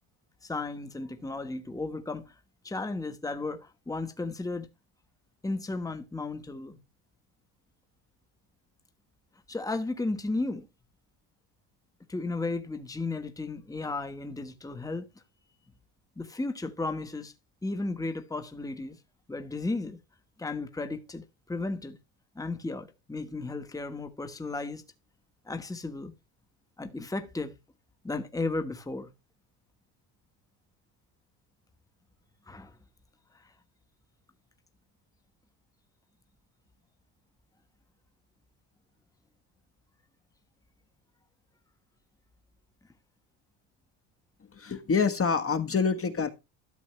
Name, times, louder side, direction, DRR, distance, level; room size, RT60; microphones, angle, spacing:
voice 1, 0.4-2.3 2.6-4.7 5.4-6.8 9.5-10.7 12.1-15.1 16.2-17.3 17.6-19.0 19.3-20.0 20.4-22.0 22.3-24.8 25.5-26.1 26.8-27.5 28.0-29.1 32.5-32.7, left 3 dB, 5° left, 1.4 m, -34 dB
voice 2, 44.5-46.3, left 5 dB, 25° left, 1.4 m, -26 dB
13.0 x 7.3 x 3.2 m
cardioid pair, 105°, 49 cm